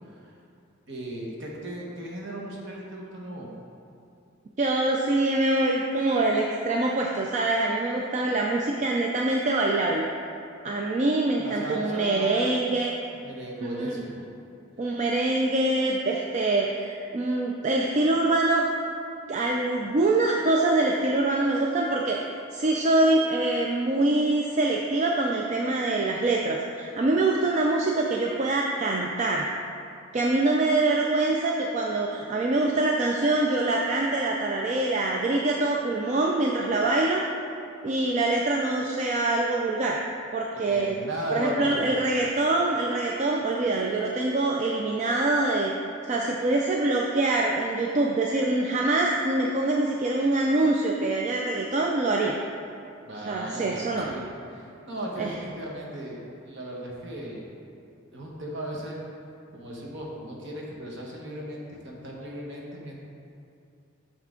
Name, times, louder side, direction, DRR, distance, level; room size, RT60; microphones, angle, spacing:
voice 1, 0.9-3.5 11.4-12.6 13.2-14.2 40.5-41.9 53.0-54.2 54.5-57.4 58.1-59.0 59.5-62.9, right 1 dB, 55° right, -2 dB, 1.1 m, -36 dB
voice 2, 4.6-10.1 10.6-12.9 13.6-13.9 14.8-18.7 19.3-22.2 22.5-29.5 30.1-37.2 37.8-40.0 40.3-41.0 41.3-45.7 46.0-52.3 53.3-54.1 55.2-55.3, right 2 dB, 35° right, -1 dB, 0.3 m, -24 dB
6.5 x 5.8 x 3.7 m, 2.5 s
head